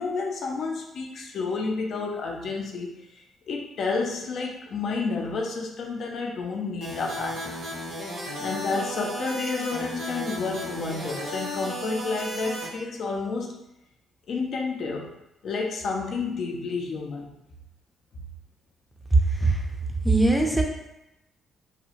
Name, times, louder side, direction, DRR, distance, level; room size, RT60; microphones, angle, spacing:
voice 1, 0.0-7.5 8.4-13.6 14.3-15.1 15.4-17.3, left 4 dB, 60° left, 0 dB, 0.4 m, -30 dB
sound 1, 6.8-12.7, equal, 75° right, 1.4 m, -34 dB
voice 2, 19.1-19.6 20.0-20.6, right 2 dB, ahead, 0 dB, 0.5 m, -20 dB
2.7 x 2.0 x 2.8 m, 0.89 s
cardioid pair, 90°, 0 cm